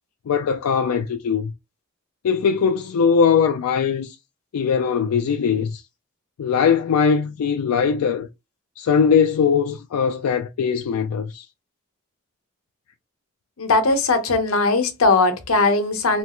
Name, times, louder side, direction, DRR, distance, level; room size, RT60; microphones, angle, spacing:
voice 1, 0.3-1.5 2.2-4.2 4.5-5.8 6.4-8.3 8.8-11.5, left 6 dB, 90° left, 0.4 m, -20 dB
voice 2, 13.6-16.2, left 3 dB, 75° left, 0.8 m, -19 dB
3.1 x 2.4 x 2.9 m
head